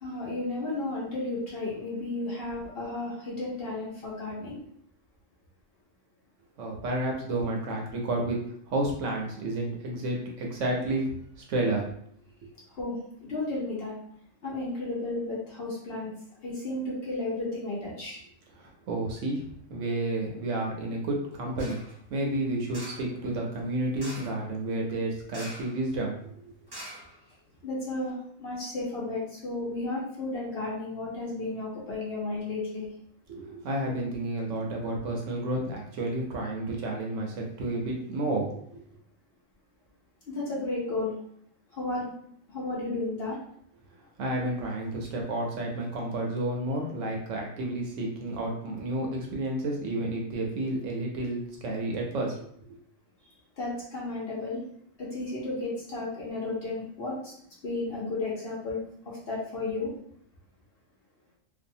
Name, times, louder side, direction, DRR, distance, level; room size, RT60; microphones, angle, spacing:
voice 1, 0.0-4.6 12.7-13.9 14.4-16.1 16.4-18.2 27.6-32.9 40.3-41.1 41.7-42.1 42.5-43.4 53.6-54.6 55.0-57.3 57.6-58.8 59.1-59.9, left 2 dB, 50° left, -5 dB, 0.9 m, -33 dB
voice 2, 6.6-8.4 8.7-11.9 18.6-19.4 19.7-26.5 33.3-38.8 44.2-52.5, right 1 dB, 70° right, 0 dB, 0.9 m, -31 dB
sound 1, 21.6-21.9 22.7-23.1 24.0-24.4 25.3-25.8 26.1-26.2 26.7-27.5 28.0-28.1, right 1 dB, 25° right, 0.6 m, -43 dB
2.6 x 2.3 x 2.6 m, 0.66 s
omnidirectional pair, 1.4 m